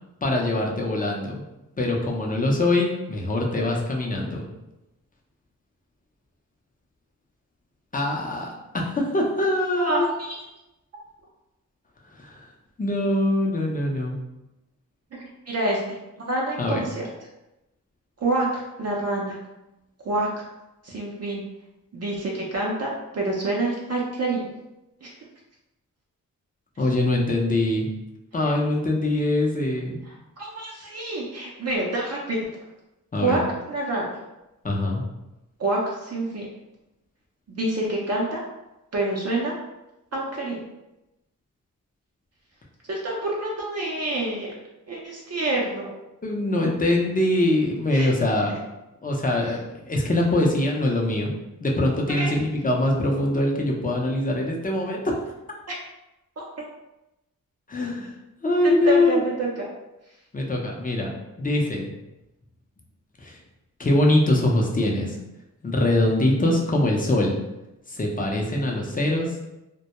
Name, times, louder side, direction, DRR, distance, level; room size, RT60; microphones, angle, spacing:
voice 1, 0.2-1.4 1.8-4.5 7.9-10.1 12.2-12.5 12.8-14.2 16.6-16.8 26.8-27.9 28.3-30.0 33.1-33.4 34.6-35.0 46.2-48.5 49.0-51.3 51.6-55.1 57.7-58.1 58.4-59.2 60.3-61.1 61.4-61.9 63.2-63.4 63.8-65.2 65.6-67.4 67.9-69.3, left 1 dB, 25° left, -1 dB, 0.6 m, -23 dB
voice 2, 9.8-10.4 15.1-15.8 16.2-17.0 18.2-19.4 20.0-20.5 20.8-21.4 21.9-24.5 25.0-25.1 28.5-28.6 30.1-32.4 33.2-33.4 33.7-34.2 35.6-36.5 37.5-38.4 38.9-39.6 40.1-40.6 42.9-44.5 44.9-45.9 47.9-48.1 52.1-52.3 55.7-55.8 56.4-56.5 58.6-59.7, right 2 dB, 45° right, -3 dB, 0.6 m, -27 dB
2.2 x 2.1 x 2.9 m, 0.95 s
cardioid pair, 55°, 35 cm